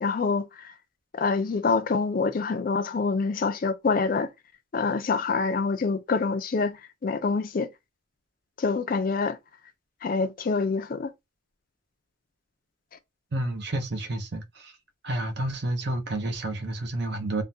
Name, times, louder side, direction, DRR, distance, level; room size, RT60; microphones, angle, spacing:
voice 1, 0.0-0.7 1.1-4.3 4.7-7.7 8.6-9.4 10.0-11.1, left 4 dB, 40° left, 0.4 m, -26 dB
voice 2, 13.3-14.7 15.0-17.4, right 1 dB, 55° right, 0.6 m, -30 dB
3.4 x 2.2 x 2.6 m
head